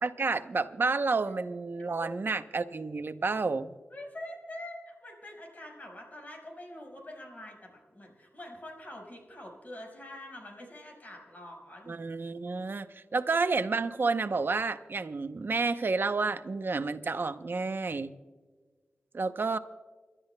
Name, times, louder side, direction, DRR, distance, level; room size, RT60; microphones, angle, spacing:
voice 1, 0.0-3.7 11.9-18.1 19.1-19.6, right 4 dB, 55° right, 11 dB, 0.7 m, -30 dB
voice 2, 3.9-12.0, left 1 dB, 40° left, 0 dB, 5.0 m, -45 dB
29.0 x 12.0 x 2.2 m, 1.4 s
cardioid pair, 45°, 4 cm